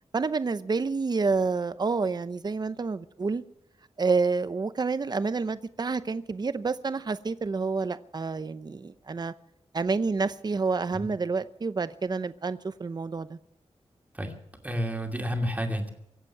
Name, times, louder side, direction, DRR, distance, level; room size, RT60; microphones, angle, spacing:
voice 1, 0.1-3.4 4.0-9.3 9.7-13.4, right 4 dB, 35° right, 0.7 m, -28 dB
voice 2, 14.6-15.9, equal, 15° right, 2.5 m, -30 dB
24.0 x 8.3 x 7.2 m
wide cardioid pair, 130°, 11 cm